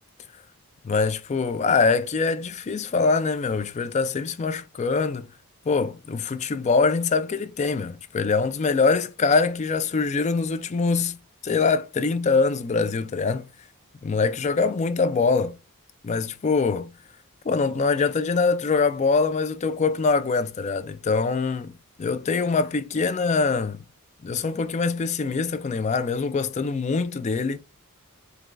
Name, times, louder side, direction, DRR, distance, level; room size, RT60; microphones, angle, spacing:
voice 1, 0.8-5.3 5.7-11.2 11.4-13.4 14.0-15.6 16.0-16.9 17.5-23.8 24.2-27.6, left 4 dB, 30° left, 0.3 m, -23 dB
6.4 x 2.3 x 2.4 m
head